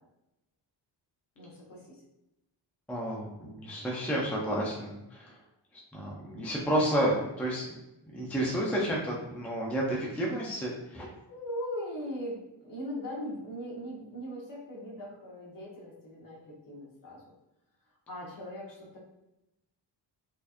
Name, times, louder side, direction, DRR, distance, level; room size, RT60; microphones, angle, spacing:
voice 1, 1.4-1.9 11.3-17.2 18.1-19.0, equal, 45° left, -5 dB, 1.2 m, -39 dB
voice 2, 2.9-5.3 5.9-7.7 8.1-11.1, equal, 5° left, -4 dB, 0.4 m, -31 dB
4.2 x 2.8 x 2.5 m, 0.92 s
wide cardioid pair, 160°, 45 cm